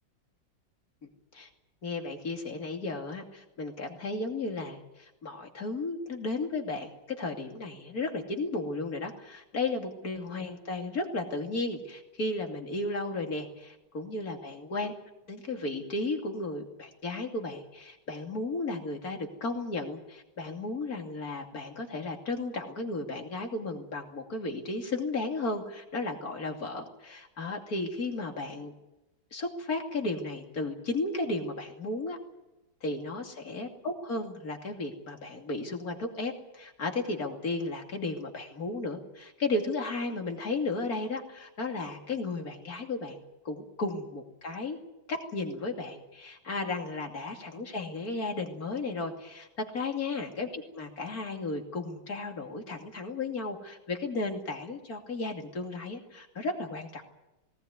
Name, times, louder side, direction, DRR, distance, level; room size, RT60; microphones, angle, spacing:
voice 1, 1.8-14.9 15.3-28.7 29.3-32.2 32.8-43.2 43.4-44.8 45.1-57.0, left 3 dB, 50° left, 3 dB, 3.1 m, -34 dB
19.0 x 18.5 x 9.5 m, 0.96 s
omnidirectional pair, 2.1 m